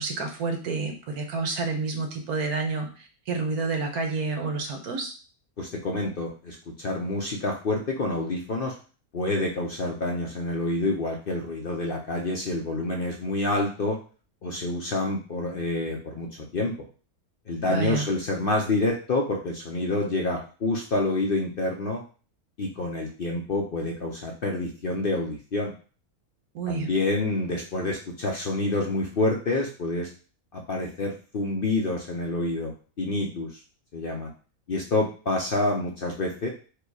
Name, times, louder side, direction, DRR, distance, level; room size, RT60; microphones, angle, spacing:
voice 1, 0.0-5.1 17.6-18.1 26.5-26.9, right 4 dB, 85° right, 4 dB, 1.4 m, -29 dB
voice 2, 5.6-8.7 9.1-14.0 14.4-16.7 17.5-22.0 22.6-25.7 26.7-30.1 30.5-33.5 33.9-34.3 34.7-36.5, left 2 dB, 50° left, 1 dB, 0.7 m, -28 dB
4.9 x 2.3 x 4.6 m, 0.37 s
omnidirectional pair, 1.6 m